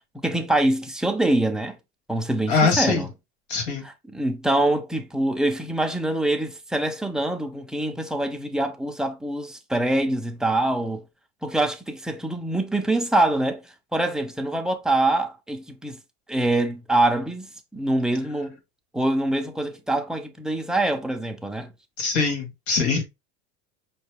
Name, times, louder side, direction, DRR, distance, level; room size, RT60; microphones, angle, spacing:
voice 1, 0.1-1.8 2.1-3.1 3.8-11.0 11.4-13.6 13.9-16.0 16.3-18.6 18.9-21.7, right 1 dB, ahead, 0.4 m, -24 dB
voice 2, 2.5-3.1 3.5-3.9 22.0-23.0, left 4 dB, 90° left, 1.9 m, -22 dB
5.3 x 2.2 x 3.3 m
supercardioid pair, 135°, 32 cm